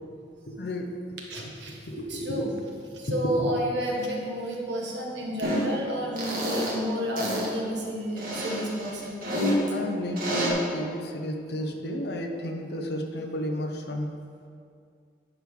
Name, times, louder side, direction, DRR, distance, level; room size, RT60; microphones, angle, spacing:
voice 1, 0.5-0.9 1.9-2.5 3.3-3.5 9.7-14.1, equal, 65° left, 3 dB, 0.9 m, -32 dB
voice 2, 1.3-1.8 2.1-2.5 2.9-9.2, equal, 80° right, -2 dB, 1.6 m, -31 dB
sound 1, 5.4-5.6 6.2-6.7 7.2-7.5 8.2-9.5 10.2-10.5, equal, 55° right, 1.9 m, -29 dB
11.0 x 4.7 x 5.4 m, 2.3 s
head